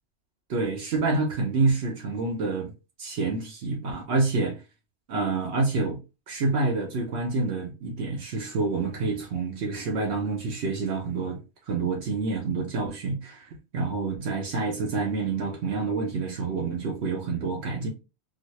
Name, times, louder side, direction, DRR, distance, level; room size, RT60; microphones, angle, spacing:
voice 1, 0.5-2.7 3.0-4.6 5.1-6.0 6.3-11.4 11.7-13.4 13.7-17.9, right 3 dB, 75° right, 1.0 m, -27 dB
4.0 x 2.0 x 3.0 m
omnidirectional pair, 1.1 m